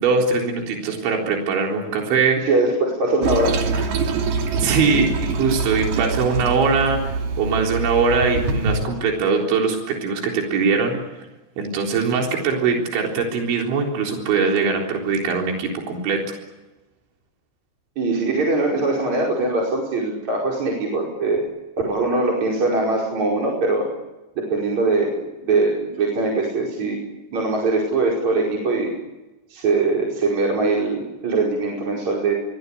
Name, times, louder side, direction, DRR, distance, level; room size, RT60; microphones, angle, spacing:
voice 1, 0.0-2.5 4.6-11.0 11.6-16.3, right 5 dB, 80° right, 1 dB, 6.1 m, -21 dB
voice 2, 2.4-3.9 18.0-21.4 21.8-23.9 24.4-27.0 27.3-28.9 29.5-32.4, right 3 dB, 40° right, -2 dB, 6.2 m, -22 dB
Toilet flush, 3.2-8.9, right 4 dB, 60° right, 4.2 m, -24 dB
28.5 x 24.0 x 8.6 m, 1.0 s
omnidirectional pair, 5.3 m